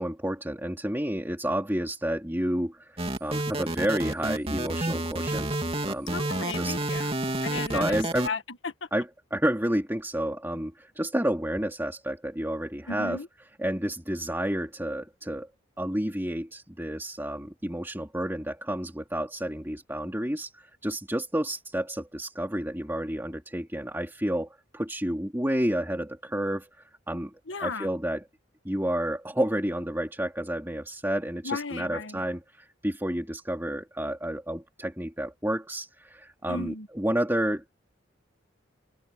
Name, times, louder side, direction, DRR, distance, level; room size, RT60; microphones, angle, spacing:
voice 1, 0.0-5.6 5.8-6.2 6.6-6.8 7.7-8.3 8.9-13.2 13.6-15.5 15.8-24.5 24.7-27.3 27.6-28.2 28.6-37.8, right 1 dB, 10° right, 2.8 m, -30 dB
sound 1, 3.0-8.3, right 1 dB, 30° right, 2.8 m, -29 dB
voice 2, 6.1-7.1 7.4-8.0 8.2-8.9 12.9-13.3 27.5-27.9 31.4-32.2 36.5-36.9, left 4 dB, 70° left, 1.6 m, -34 dB
open air
head